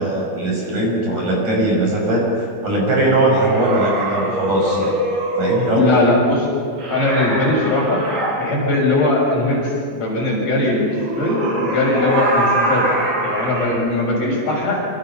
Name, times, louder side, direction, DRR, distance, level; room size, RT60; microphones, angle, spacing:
voice 1, 0.0-5.0 5.4-5.8, right 1 dB, 40° right, -1 dB, 6.6 m, -19 dB
sound 1, 3.3-5.8 6.8-8.3 10.9-13.8, right 1 dB, 85° right, 9.9 m, -23 dB
voice 2, 5.8-6.6 6.9-8.0 8.4-10.9 11.2-12.9 13.2-14.9, left 2 dB, 50° left, -3 dB, 9.1 m, -19 dB
28.5 x 27.5 x 5.9 m, 2.2 s
omnidirectional pair, 5.3 m